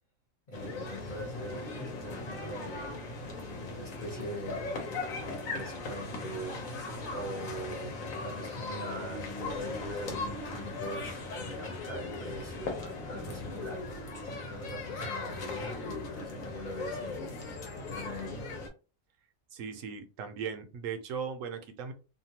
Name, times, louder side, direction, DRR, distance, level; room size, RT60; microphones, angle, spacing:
sound 1, 0.5-18.7, left 3 dB, 85° left, 1.2 m, -38 dB
voice 1, 0.5-4.8 5.4-6.6 7.1-7.9 8.2-13.9 14.2-17.3 17.9-18.5, right 1 dB, 45° left, -3 dB, 0.8 m, -42 dB
voice 2, 19.5-21.9, right 6 dB, 75° right, 7 dB, 1.0 m, -38 dB
2.7 x 2.3 x 2.8 m, 0.33 s
omnidirectional pair, 1.4 m